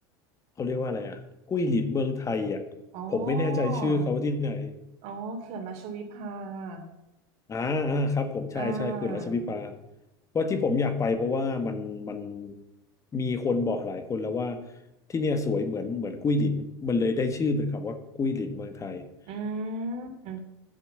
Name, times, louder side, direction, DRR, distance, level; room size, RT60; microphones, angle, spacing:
voice 1, 0.6-1.2 1.5-2.6 3.1-4.7 7.5-9.7 10.3-12.5 13.1-14.6 15.1-19.0, left 3 dB, 25° left, 8 dB, 1.5 m, -28 dB
voice 2, 2.9-4.1 5.0-6.9 8.5-9.4 19.3-20.4, right 3 dB, 55° right, 5 dB, 2.9 m, -35 dB
10.5 x 7.3 x 7.9 m, 0.87 s
hypercardioid pair, 100°, 13 cm